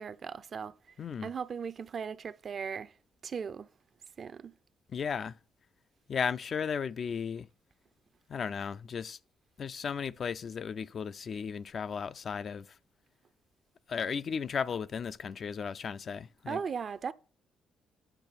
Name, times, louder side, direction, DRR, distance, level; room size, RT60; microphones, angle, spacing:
voice 1, 0.0-0.9 1.2-2.9 3.2-3.7 4.2-4.5 16.5-17.1, right 6 dB, 50° right, 0.4 m, -38 dB
voice 2, 1.0-1.3 4.9-5.4 6.1-7.5 8.3-9.2 9.6-12.7 13.9-16.6, left 6 dB, 50° left, 0.3 m, -35 dB
8.8 x 5.6 x 4.1 m
cardioid pair, 90°, 0 cm